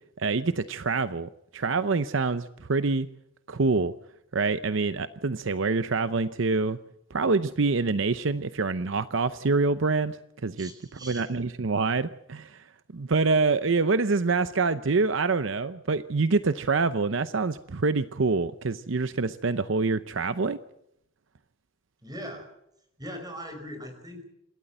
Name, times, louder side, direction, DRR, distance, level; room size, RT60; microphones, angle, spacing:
voice 1, 0.2-3.1 3.5-3.9 4.3-6.8 7.1-10.2 10.4-10.7 11.0-12.6 12.9-20.6, right 4 dB, 65° right, 12 dB, 0.7 m, -26 dB
voice 2, 10.5-11.3 22.0-22.5 23.0-24.2, equal, 20° right, 6 dB, 5.0 m, -40 dB
27.0 x 13.0 x 8.0 m, 0.80 s
head